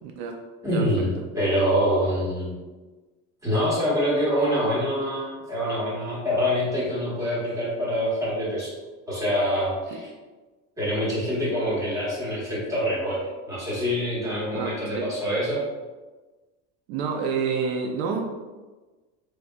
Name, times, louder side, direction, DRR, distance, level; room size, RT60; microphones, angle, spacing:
voice 1, 0.0-0.4 0.7-0.9 9.9-10.0 14.5-14.7 14.9-15.1 16.9-18.3, right 5 dB, 80° right, 2 dB, 0.5 m, -28 dB
voice 2, 0.6-2.6 3.4-8.7 9.1-10.1 10.8-13.2 13.5-15.6, equal, 10° right, -9 dB, 1.2 m, -25 dB
3.3 x 2.5 x 2.2 m, 1.3 s
cardioid pair, 150°, 32 cm